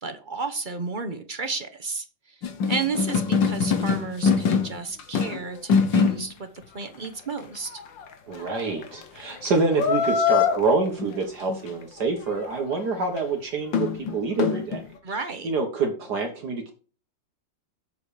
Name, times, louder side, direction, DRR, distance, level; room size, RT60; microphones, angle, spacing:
voice 1, 0.0-2.4 2.7-6.5 6.7-7.8 15.0-15.5, right 4 dB, 40° right, 7 dB, 0.8 m, -32 dB
sound 1, 2.4-5.4 5.7-6.3 7.0-7.1 7.8-8.0 8.5-8.6 8.8-9.5 9.7-10.6 11.0-11.1 11.5-11.6 13.2-13.3 13.7-14.8, left 6 dB, 80° left, 2.0 m, -23 dB
voice 2, 8.3-14.8 15.4-16.7, right 3 dB, 60° right, 3 dB, 1.9 m, -26 dB
7.9 x 7.0 x 4.9 m, 0.37 s
omnidirectional pair, 2.0 m